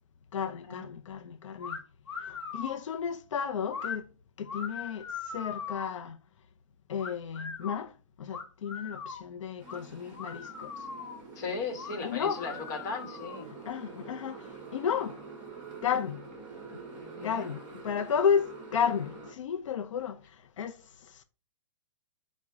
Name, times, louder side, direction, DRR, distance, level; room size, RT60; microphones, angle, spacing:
voice 1, 0.3-1.8 2.2-4.1 4.4-6.2 6.9-10.9 12.0-12.4 13.7-15.2 15.8-16.2 17.2-21.2, left 7 dB, 80° left, 0.5 m, -33 dB
sound 1, 1.6-1.8 2.1-2.8 3.7-4.0 4.5-6.0 7.0-7.8 8.3-9.2 9.7-9.8 10.1-11.2 11.7-12.0 12.4-13.5, left 5 dB, 60° left, 1.0 m, -40 dB
Motorcycle, 9.6-19.3, right 4 dB, 25° right, 1.4 m, -46 dB
voice 2, 11.4-13.5 17.0-17.5, left 4 dB, 35° left, 1.0 m, -37 dB
4.9 x 2.1 x 4.5 m
hypercardioid pair, 170°, 16 cm